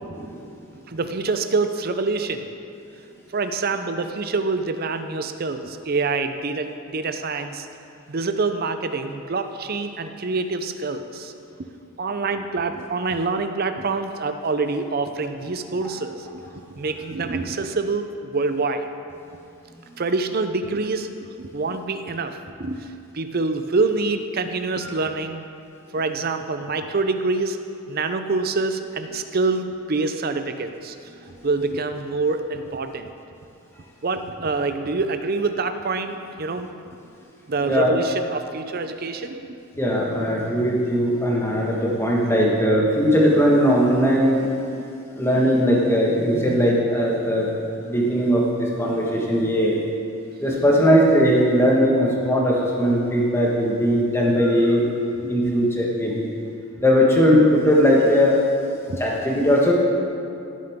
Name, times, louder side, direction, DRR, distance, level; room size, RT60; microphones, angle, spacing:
voice 1, 0.1-0.5 24.8-24.9 37.7-37.9 39.8-44.5 45.2-47.5 47.8-49.8 50.4-54.9 55.3-56.3 56.8-58.4 58.7-59.7, equal, 10° left, -3 dB, 1.5 m, -19 dB
voice 2, 0.9-2.4 3.3-7.7 8.1-11.3 12.0-16.4 16.8-18.9 20.0-22.8 23.1-25.4 25.9-27.6 27.9-31.0 31.4-33.1 34.0-36.7 37.5-39.5 40.1-40.3 46.3-46.6 58.9-59.0, right 3 dB, 45° right, 8 dB, 0.5 m, -26 dB
16.5 x 7.8 x 3.6 m, 2.6 s
head